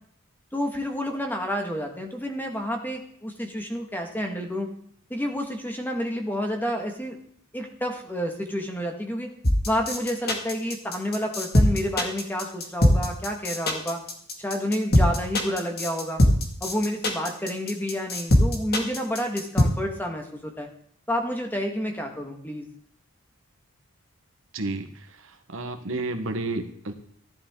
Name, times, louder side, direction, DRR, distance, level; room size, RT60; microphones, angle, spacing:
voice 1, 0.5-4.7 5.1-7.2 7.5-9.3 9.7-14.0 14.4-16.2 16.6-20.7 21.1-22.7, equal, 10° left, 3 dB, 1.6 m, -29 dB
sound 1, 9.4-19.6, left 1 dB, 45° left, 2.0 m, -21 dB
voice 2, 24.5-24.9 25.2-26.9, right 2 dB, 65° right, 7 dB, 1.2 m, -31 dB
14.0 x 11.5 x 3.7 m, 0.63 s
head